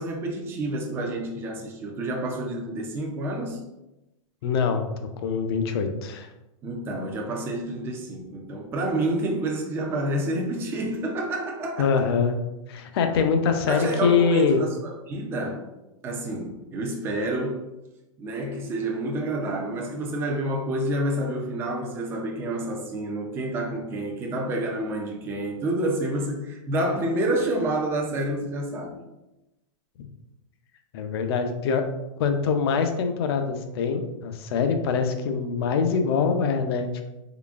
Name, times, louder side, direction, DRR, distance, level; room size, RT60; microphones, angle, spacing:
voice 1, 0.0-3.6 6.6-12.1 13.7-15.7 16.0-17.6 18.2-29.0, right 1 dB, 15° right, 0.4 m, -28 dB
voice 2, 4.4-4.8 5.2-6.3 11.8-12.4 12.7-14.6 30.9-31.9 32.2-37.0, left 6 dB, 50° left, 0.5 m, -24 dB
3.8 x 3.2 x 2.4 m
hypercardioid pair, 155°, 17 cm